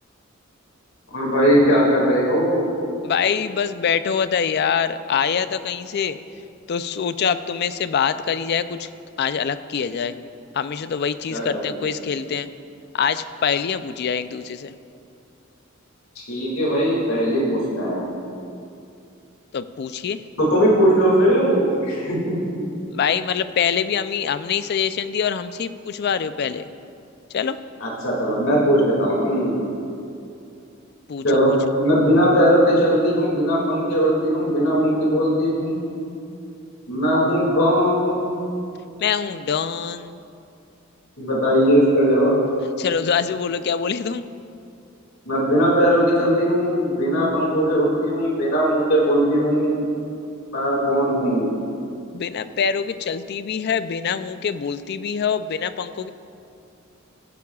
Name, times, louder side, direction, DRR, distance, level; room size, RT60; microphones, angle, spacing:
voice 1, 1.1-2.6 11.3-11.7 16.2-18.0 20.4-22.4 27.8-29.6 31.2-31.5 31.8-35.8 36.9-38.4 41.2-42.4 45.3-49.9 50.5-51.6, equal, 90° left, -4 dB, 2.3 m, -19 dB
voice 2, 3.0-6.2 6.7-8.9 9.2-10.2 10.5-12.5 12.9-14.7 19.5-20.2 22.9-26.7 27.3-27.6 31.1-31.6 39.0-40.2 42.8-44.2 52.1-56.1, left 7 dB, 50° left, 13 dB, 0.4 m, -24 dB
16.0 x 11.5 x 2.4 m, 2.6 s
head